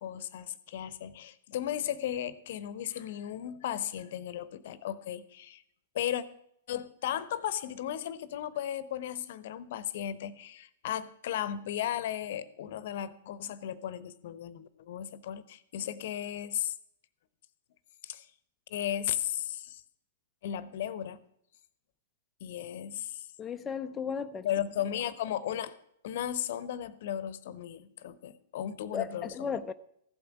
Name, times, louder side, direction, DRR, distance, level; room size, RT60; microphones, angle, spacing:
voice 1, 0.0-5.6 5.9-6.2 6.7-16.7 18.0-18.3 18.7-19.8 20.4-21.2 22.4-23.3 24.4-25.7 26.0-29.6, left 10 dB, 55° left, 0.9 m, -35 dB
voice 2, 23.4-24.5 28.9-29.7, left 6 dB, 20° left, 0.5 m, -35 dB
15.0 x 8.5 x 6.0 m
figure-of-eight pair, 105°, 0 cm